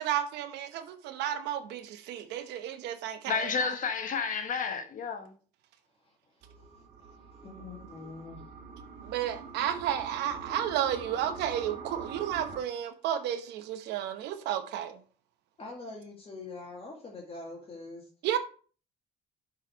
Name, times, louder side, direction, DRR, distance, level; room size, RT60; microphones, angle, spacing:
voice 1, 0.0-3.7 9.0-15.0 18.2-18.4, right 10 dB, 85° right, 0.9 m, -32 dB
voice 2, 3.3-5.3, left 5 dB, 50° left, 1.0 m, -31 dB
sound 1, 6.4-12.6, right 5 dB, 55° right, 1.5 m, -44 dB
voice 3, 7.4-8.4 15.6-18.0, left 3 dB, 35° left, 1.9 m, -43 dB
7.4 x 4.7 x 4.6 m
cardioid pair, 110°, 17 cm